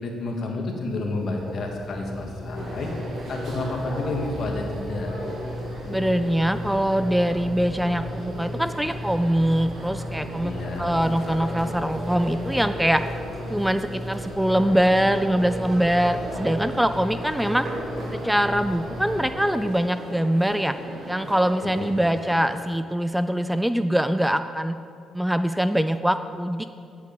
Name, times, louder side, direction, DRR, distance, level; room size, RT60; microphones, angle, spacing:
voice 1, 0.0-2.9 3.3-5.1 10.4-11.0 21.8-21.9, left 2 dB, 60° left, 1 dB, 1.9 m, -30 dB
sound 1, 0.8-19.3, left 1 dB, 15° left, 3.3 m, -35 dB
sound 2, 2.6-22.5, right 1 dB, 60° right, 2.1 m, -37 dB
voice 2, 5.9-13.0 13.5-17.7 18.1-20.8 21.1-24.8 25.1-26.7, equal, 5° right, 10 dB, 0.4 m, -23 dB
9.3 x 8.3 x 6.8 m, 2.4 s
cardioid pair, 90°, 0 cm